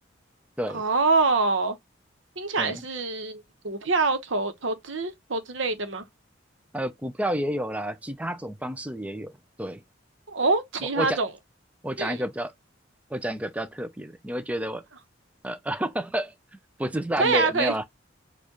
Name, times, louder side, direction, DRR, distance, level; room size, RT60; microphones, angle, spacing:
voice 1, 0.7-1.8 2.4-6.1 10.3-11.3 12.0-12.2 17.2-17.7, right 3 dB, 70° right, 1.0 m, -25 dB
voice 2, 6.7-9.3 9.6-9.8 11.0-11.2 11.8-12.5 13.1-14.8 15.4-16.3 16.8-17.8, equal, 5° right, 0.4 m, -30 dB
4.5 x 2.4 x 2.9 m
head